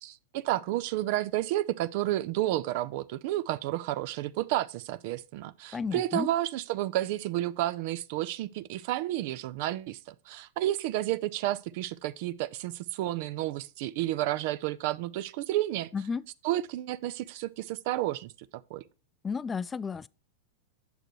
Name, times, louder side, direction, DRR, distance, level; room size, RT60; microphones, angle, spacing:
voice 1, 0.0-15.9 16.4-18.3 18.7-18.8, right 15 dB, 55° right, 0.4 m, -31 dB
voice 2, 5.7-6.3 15.9-16.2 19.2-20.1, left 5 dB, 15° left, 0.3 m, -32 dB
9.0 x 6.5 x 3.1 m
supercardioid pair, 130°, 0 cm